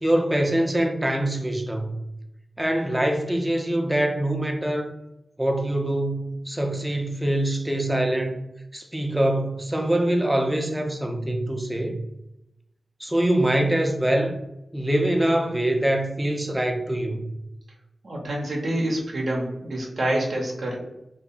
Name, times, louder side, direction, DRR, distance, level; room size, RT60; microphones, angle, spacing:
voice 1, 0.0-2.0 2.6-4.9 5.4-8.4 8.7-12.0 13.0-14.4 14.7-17.3, right 1 dB, 15° right, 0.4 m, -24 dB
voice 2, 18.0-20.8, right 1 dB, 70° right, 0.6 m, -27 dB
2.6 x 2.2 x 2.4 m
cardioid pair, 45°, 0 cm